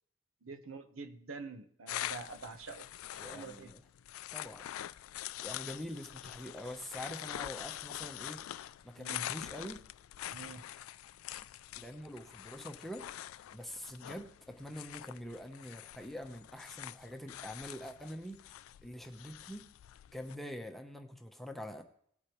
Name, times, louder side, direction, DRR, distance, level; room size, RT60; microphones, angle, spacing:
voice 1, 0.4-2.8 3.3-3.7 9.0-9.3 10.3-10.7, right 4 dB, 85° right, 9 dB, 1.0 m, -46 dB
sound 1, 1.9-20.4, left 13 dB, 85° left, 0.3 m, -45 dB
voice 2, 3.2-3.8 4.3-4.7 5.4-9.8 11.8-18.4 18.8-19.7 20.1-21.8, equal, ahead, 4 dB, 0.8 m, -45 dB
18.5 x 8.3 x 3.1 m, 0.66 s
head